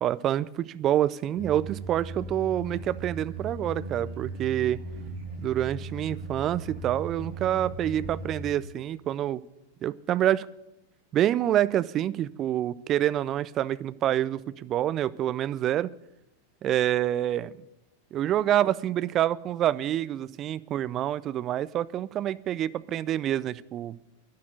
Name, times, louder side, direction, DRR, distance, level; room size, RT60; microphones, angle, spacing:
voice 1, 0.0-4.8 5.4-9.4 9.8-10.5 11.1-15.9 16.6-17.6 18.1-24.0, right 12 dB, 30° right, 17 dB, 0.4 m, -27 dB
sound 1, 1.3-8.5, right 2 dB, 55° right, 5.4 m, -38 dB
11.0 x 10.5 x 7.9 m, 0.92 s
figure-of-eight pair, 90°, 0 cm